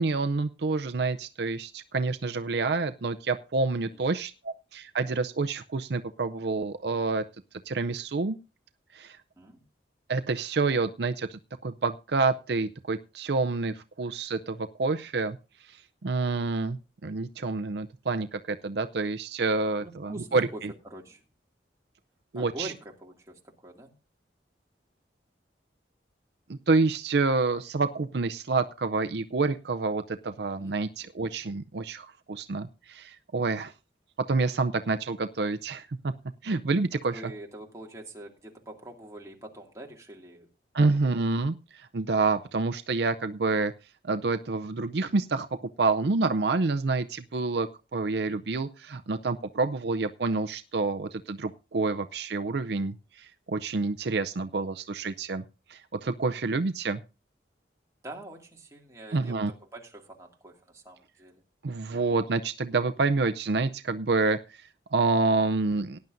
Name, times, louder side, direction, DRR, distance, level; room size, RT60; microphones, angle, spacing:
voice 1, 0.0-7.2 7.7-8.4 8.9-9.2 10.1-20.5 22.3-22.7 26.5-33.7 34.3-36.1 36.4-37.2 40.7-43.7 44.0-45.5 45.8-55.4 55.7-57.0 59.1-59.5 61.6-66.0, right 3 dB, 65° right, 10 dB, 0.5 m, -28 dB
voice 2, 19.8-21.2 22.3-23.9 30.6-30.9 37.0-40.5 40.8-41.2 58.0-61.4, right 1 dB, 15° right, 0 dB, 2.3 m, -44 dB
18.0 x 10.5 x 2.6 m, 0.31 s
head